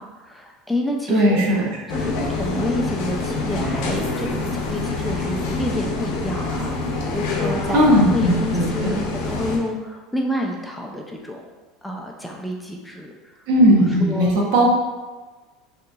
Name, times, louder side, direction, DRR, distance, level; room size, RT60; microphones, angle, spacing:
voice 1, 0.0-1.4 1.9-6.7 7.1-11.5 11.8-13.3 13.7-14.4, left 1 dB, 5° left, 0 dB, 0.3 m, -29 dB
voice 2, 1.1-1.7 7.7-9.0 13.5-14.7, equal, 75° right, -2 dB, 0.8 m, -17 dB
sound 1, 1.9-9.6, left 3 dB, 70° left, 0.6 m, -26 dB
3.7 x 2.8 x 2.3 m, 1.3 s
supercardioid pair, 135°, 0 cm